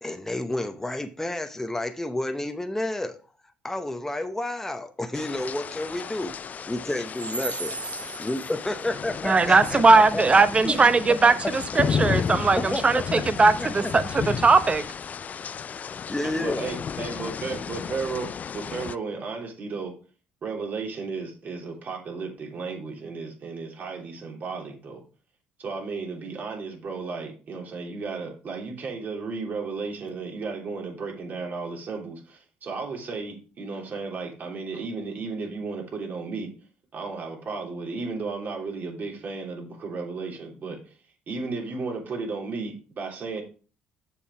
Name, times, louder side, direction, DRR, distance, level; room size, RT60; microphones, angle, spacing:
voice 1, 0.0-3.2 3.6-6.4 6.7-7.7 8.2-11.3 12.6-13.9 15.7-16.7, left 1 dB, 10° left, 0.8 m, -31 dB
sound 1, 5.1-19.0, left 7 dB, 40° left, 0.4 m, -33 dB
voice 2, 9.2-14.8, right 3 dB, 30° right, 0.9 m, -19 dB
voice 3, 16.2-19.9 20.4-25.0 25.6-36.5 36.9-40.9 41.3-43.4, right 4 dB, 50° right, 3.2 m, -34 dB
7.0 x 5.6 x 4.8 m
supercardioid pair, 80°, 4 cm